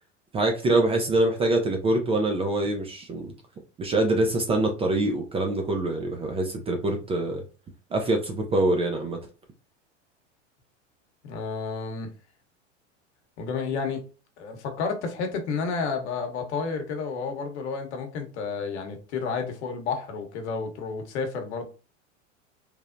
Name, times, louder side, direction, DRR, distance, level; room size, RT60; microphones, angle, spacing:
voice 1, 0.3-3.3 3.8-7.4 7.9-9.2, right 2 dB, 15° right, 0.4 m, -24 dB
voice 2, 11.2-12.1 13.4-14.0 14.4-21.7, left 5 dB, 65° left, 1.0 m, -31 dB
3.2 x 2.0 x 2.5 m
hypercardioid pair, 95°, 36 cm